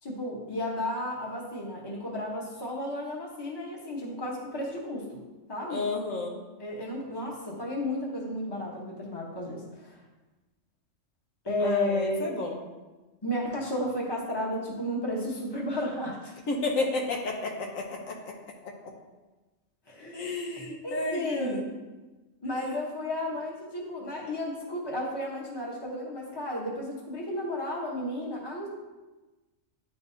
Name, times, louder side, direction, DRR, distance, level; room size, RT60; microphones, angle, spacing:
voice 1, 0.0-5.2 5.5-5.8 6.6-10.0 11.4-12.3 13.2-16.3 19.9-20.3 20.8-21.6 22.4-28.7, left 1 dB, 20° left, -3 dB, 1.0 m, -33 dB
voice 2, 5.7-6.4 11.6-12.6 16.5-18.3 18.6-18.7 20.1-21.7, left 3 dB, 80° left, 0 dB, 1.3 m, -32 dB
10.0 x 3.5 x 2.7 m, 1.2 s
omnidirectional pair, 1.4 m